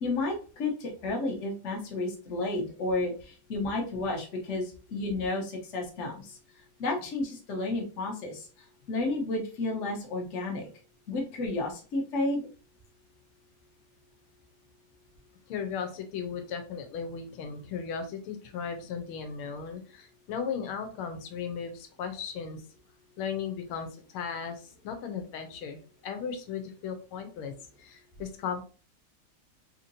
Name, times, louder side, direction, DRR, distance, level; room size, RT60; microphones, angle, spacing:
voice 1, 0.0-6.4 6.8-8.5 8.9-10.7 11.1-12.5, left 2 dB, 50° left, 0 dB, 0.9 m, -31 dB
voice 2, 15.5-22.6 23.2-25.8 26.0-27.5 27.8-28.6, left 6 dB, 90° left, 6 dB, 1.5 m, -36 dB
3.7 x 2.9 x 2.6 m, 0.38 s
omnidirectional pair, 2.3 m